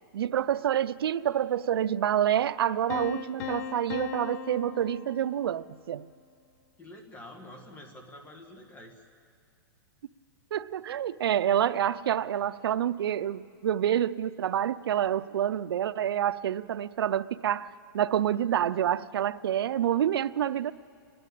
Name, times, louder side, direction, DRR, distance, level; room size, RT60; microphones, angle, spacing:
voice 1, 0.1-6.1 10.5-20.7, right 10 dB, 85° right, 0.6 m, -28 dB
Piano, 2.9-5.8, left 7 dB, 45° left, 0.9 m, -38 dB
voice 2, 6.8-9.0, left 1 dB, 15° left, 1.8 m, -47 dB
29.5 x 11.0 x 8.4 m
hypercardioid pair, 160°, 12 cm